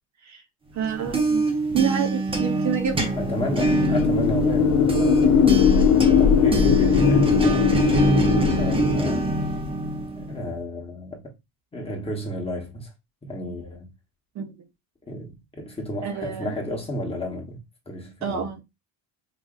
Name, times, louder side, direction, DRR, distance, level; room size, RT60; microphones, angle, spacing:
voice 1, 0.7-1.4 1.7-3.2 14.3-14.6 16.0-16.6 18.2-18.6, right 7 dB, 45° right, 0.8 m, -28 dB
sound 1, 0.8-10.5, right 2 dB, 15° right, 0.5 m, -24 dB
sound 2, 3.1-9.3, left 9 dB, 60° left, 0.5 m, -20 dB
voice 2, 3.2-9.3 10.1-11.3 11.7-12.9 13.2-13.9 15.1-18.5, left 1 dB, 15° left, 1.0 m, -32 dB
4.9 x 2.6 x 2.4 m
cardioid pair, 150°, 39 cm